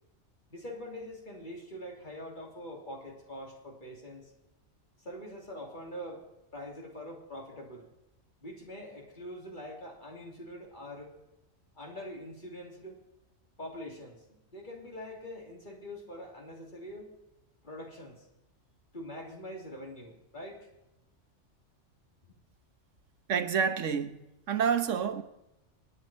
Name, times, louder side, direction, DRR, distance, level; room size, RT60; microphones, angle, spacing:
voice 1, 0.5-4.3 5.0-6.2 6.5-7.9 8.4-11.1 11.7-12.9 13.6-17.1 17.6-18.3 18.9-20.7, equal, 40° left, 3.1 m, -44 dB
voice 2, 23.3-25.2, right 7 dB, 85° right, 1.4 m, -29 dB
27.0 x 9.6 x 4.4 m
omnidirectional pair, 1.3 m